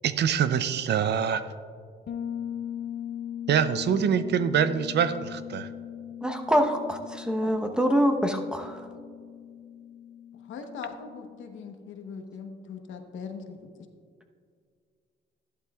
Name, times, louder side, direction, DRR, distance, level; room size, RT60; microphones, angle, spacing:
voice 1, 0.0-1.4 3.5-5.7, right 8 dB, 60° right, 13 dB, 0.5 m, -25 dB
Bass guitar, 2.1-11.7, left 9 dB, 55° left, 0.8 m, -39 dB
voice 2, 6.2-8.8, equal, 5° right, 4 dB, 0.9 m, -25 dB
voice 3, 10.4-13.7, left 5 dB, 75° left, 5 dB, 1.1 m, -40 dB
13.0 x 11.5 x 2.4 m, 2.1 s
cardioid pair, 90°, 20 cm